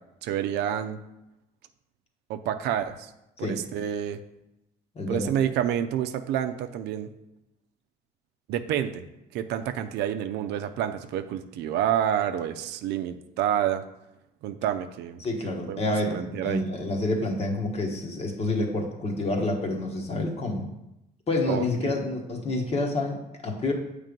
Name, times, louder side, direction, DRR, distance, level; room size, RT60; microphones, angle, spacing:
voice 1, 0.2-1.0 2.3-3.1 3.4-4.2 5.1-7.1 8.5-9.0 9.3-13.8 14.4-15.2 15.7-16.6 21.5-21.9, right 10 dB, 85° right, 8 dB, 0.5 m, -28 dB
voice 2, 4.9-5.3 15.2-20.7 21.3-23.7, left 2 dB, 35° left, 2 dB, 1.3 m, -28 dB
7.5 x 3.3 x 5.2 m, 0.89 s
cardioid pair, 110°, 17 cm